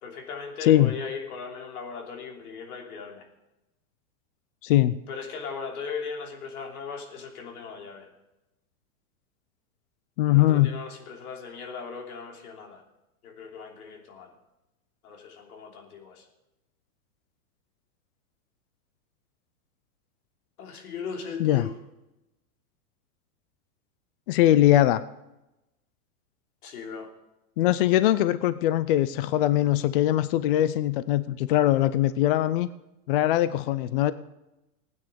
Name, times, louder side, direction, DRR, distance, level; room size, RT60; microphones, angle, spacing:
voice 1, 0.0-3.3 5.1-8.1 10.2-12.8 13.2-14.3 15.0-16.2 20.6-21.7 26.6-27.1, left 5 dB, 80° left, 3 dB, 3.2 m, -38 dB
voice 2, 4.6-5.0 10.2-10.8 21.4-21.7 24.3-25.0 27.6-32.7 33.1-34.1, left 13 dB, 40° left, 15 dB, 0.4 m, -21 dB
16.5 x 9.4 x 5.2 m, 0.95 s
supercardioid pair, 155°, 44 cm